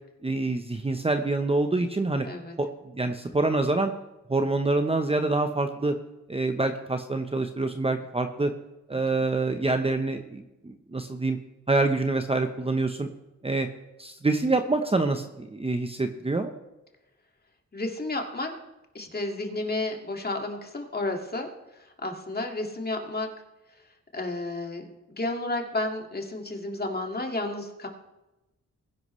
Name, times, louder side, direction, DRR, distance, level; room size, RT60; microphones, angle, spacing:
voice 1, 0.2-2.3 2.6-2.7 2.9-3.9 4.3-5.9 6.3-8.5 8.9-11.4 11.7-13.1 13.4-13.7 14.0-16.5, right 2 dB, 20° right, 6 dB, 0.9 m, -26 dB
voice 2, 2.2-2.6 9.1-9.2 17.7-18.6 18.9-21.5 21.8-23.3 24.1-27.9, left 2 dB, 30° left, 3 dB, 2.1 m, -32 dB
21.0 x 10.5 x 3.2 m, 0.98 s
wide cardioid pair, 105°, 29 cm